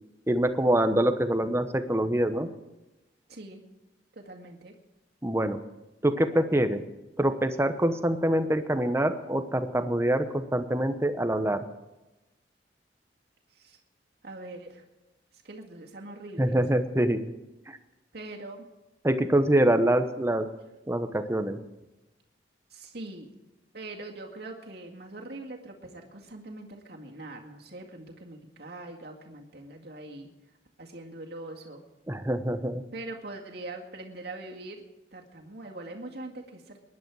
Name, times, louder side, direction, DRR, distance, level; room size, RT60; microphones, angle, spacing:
voice 1, 0.3-2.5 5.2-5.6 6.0-6.8 7.2-11.6 16.4-17.3 17.7-17.8 19.0-20.5 20.9-21.6 32.1-32.8, right 1 dB, 15° right, 9 dB, 0.9 m, -25 dB
voice 2, 3.3-3.6 4.1-4.7 13.5-13.8 14.2-14.8 15.4-16.6 18.1-18.7 22.7-23.3 23.7-30.3 30.8-31.8 32.9-34.8 35.1-36.8, right 2 dB, 60° right, 1 dB, 2.0 m, -42 dB
20.5 x 10.5 x 4.8 m, 1.0 s
head